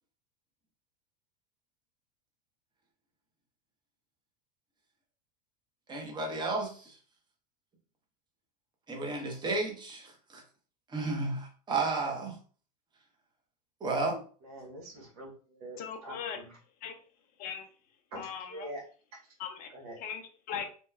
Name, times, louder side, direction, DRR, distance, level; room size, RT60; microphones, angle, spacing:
voice 1, 5.9-7.0 8.9-10.4 10.9-12.4 13.8-14.2, right 3 dB, 20° right, 1 dB, 0.9 m, -33 dB
voice 2, 14.4-16.6 18.1-18.8 19.7-20.0, right 1 dB, 70° right, -1 dB, 1.2 m, -45 dB
voice 3, 15.8-16.4 16.8-16.9 17.4-17.7 18.2-18.7 19.4-19.7 20.0-20.7, left 7 dB, 45° left, 5 dB, 0.6 m, -39 dB
2.8 x 2.2 x 2.3 m, 0.40 s
hypercardioid pair, 90°, 20 cm